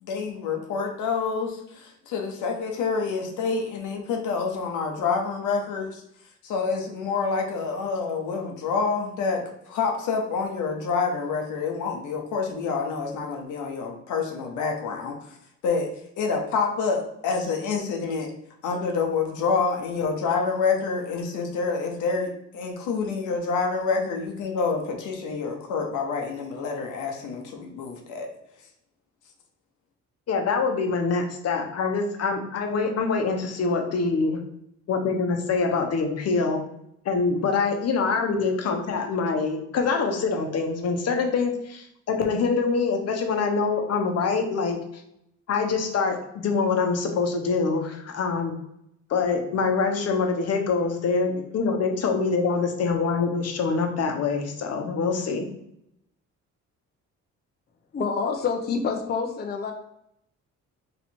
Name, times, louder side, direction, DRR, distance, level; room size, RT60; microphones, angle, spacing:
voice 1, 0.0-6.0 6.4-15.4 15.6-15.9 16.2-18.3 18.6-28.3, left 5 dB, 80° left, 2 dB, 0.8 m, -27 dB
voice 2, 30.3-34.4 34.9-36.6 37.1-41.5 42.1-44.8 45.5-48.5 49.1-55.5, left 4 dB, 55° left, 4 dB, 0.9 m, -25 dB
voice 3, 57.9-59.7, left 5 dB, 35° left, 4 dB, 0.6 m, -27 dB
3.2 x 2.9 x 4.3 m, 0.77 s
cardioid pair, 90°, 30 cm